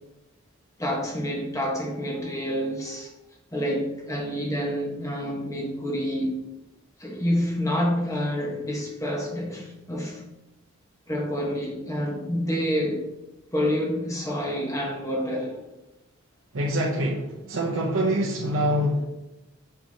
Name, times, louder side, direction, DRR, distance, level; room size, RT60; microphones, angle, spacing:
voice 1, 0.8-3.1 3.5-6.4 7.0-10.2 11.1-13.0 13.5-15.6, equal, 15° left, -1 dB, 1.2 m, -28 dB
voice 2, 16.5-19.1, equal, 75° right, -3 dB, 0.8 m, -25 dB
6.8 x 5.7 x 2.8 m, 0.95 s
head